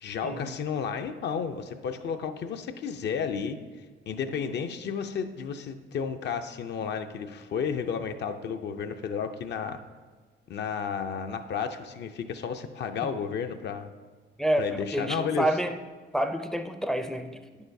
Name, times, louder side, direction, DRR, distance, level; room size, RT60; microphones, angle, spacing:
voice 1, 0.0-3.6 4.1-9.8 10.5-13.9 14.6-15.5, left 6 dB, 60° left, 7 dB, 0.5 m, -32 dB
voice 2, 14.4-15.7 16.1-17.3, right 1 dB, ahead, 7 dB, 0.4 m, -28 dB
9.1 x 6.7 x 2.6 m, 1.4 s
cardioid pair, 90°, 20 cm